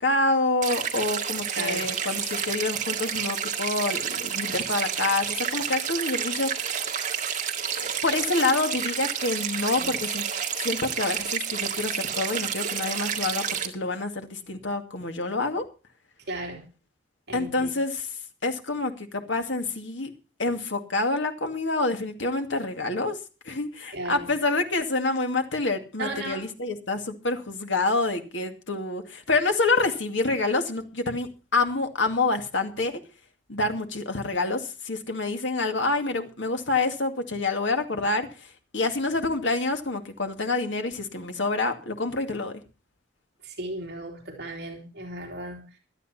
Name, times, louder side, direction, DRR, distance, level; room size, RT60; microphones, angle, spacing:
voice 1, 0.0-6.9 7.8-10.3 10.6-15.7 17.3-18.1 18.4-20.1 20.4-23.2 23.4-33.0 33.5-42.6, left 3 dB, 80° left, 5 dB, 2.3 m, -27 dB
sound 1, 0.6-13.7, right 8 dB, 40° right, 1.9 m, -30 dB
voice 2, 1.5-1.9 9.8-10.0 16.3-16.7 17.3-17.7 23.9-24.3 26.0-26.4 43.4-45.8, right 1 dB, 60° right, 1 dB, 3.0 m, -35 dB
16.5 x 12.5 x 4.3 m, 0.33 s
head